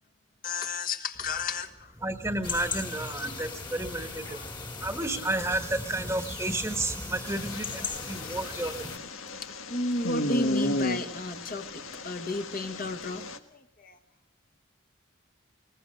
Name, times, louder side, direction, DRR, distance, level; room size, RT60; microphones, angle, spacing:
voice 1, 0.4-1.9 3.2-3.3 4.3-4.5 7.9-8.0 9.7-14.0, left 2 dB, 40° left, 6 dB, 1.5 m, -33 dB
voice 2, 2.0-8.9, right 2 dB, 15° right, 8 dB, 1.4 m, -32 dB
sound 1, 2.4-9.0, left 4 dB, 20° left, 1.9 m, -38 dB
sound 2, 7.2-13.4, left 2 dB, 85° left, 1.6 m, -34 dB
22.0 x 20.0 x 6.6 m, 0.71 s
head